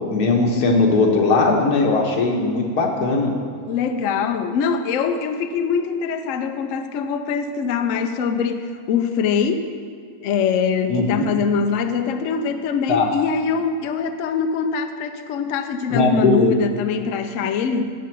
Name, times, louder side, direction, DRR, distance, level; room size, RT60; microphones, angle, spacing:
voice 1, 0.1-3.3 10.9-11.3 12.9-13.1 15.9-16.5, left 3 dB, 85° left, 2 dB, 1.7 m, -18 dB
voice 2, 3.7-9.7 10.2-17.9, left 6 dB, 65° left, 7 dB, 0.9 m, -23 dB
16.0 x 6.0 x 4.5 m, 2.3 s
omnidirectional pair, 1.7 m